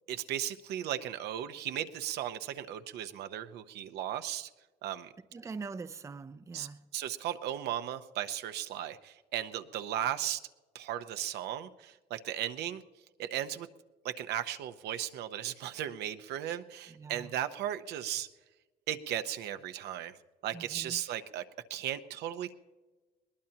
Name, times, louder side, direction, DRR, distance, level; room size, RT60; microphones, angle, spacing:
voice 1, 0.1-4.5 4.8-5.1 6.5-10.4 10.7-12.8 13.2-13.7 14.0-18.3 18.9-20.1 20.4-21.4 21.7-22.6, right 11 dB, 80° right, 0.8 m, -36 dB
voice 2, 5.3-6.8 16.9-17.3 20.5-21.0, right 4 dB, 15° right, 0.5 m, -43 dB
21.0 x 19.0 x 2.9 m
cardioid pair, 110°, 17 cm